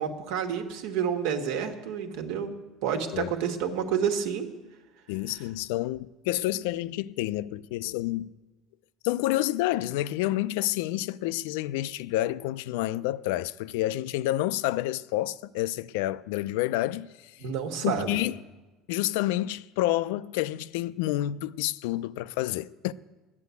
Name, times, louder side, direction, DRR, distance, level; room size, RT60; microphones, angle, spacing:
voice 1, 0.0-2.6 2.8-4.5 17.4-18.2, right 7 dB, 70° right, 1.5 m, -29 dB
voice 2, 5.1-8.3 9.0-17.1 17.8-18.4 18.9-22.9, left 15 dB, 85° left, 0.4 m, -29 dB
11.5 x 9.7 x 8.2 m
cardioid pair, 155°, 0 cm